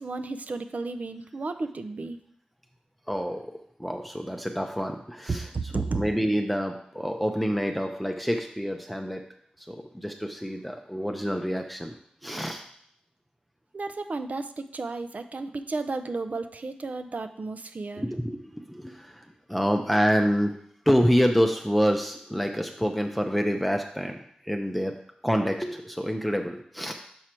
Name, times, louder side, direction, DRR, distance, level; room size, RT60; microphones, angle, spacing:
voice 1, 0.0-2.2 5.5-6.0 13.7-18.1, right 3 dB, 60° right, 9 dB, 0.5 m, -33 dB
voice 2, 3.1-5.5 5.7-9.2 9.6-12.0 12.2-12.6 18.0-20.5 20.9-24.2 24.4-24.9 25.2-26.9, equal, ahead, 3 dB, 0.6 m, -27 dB
6.2 x 4.7 x 4.4 m, 0.67 s
cardioid pair, 55°, 3 cm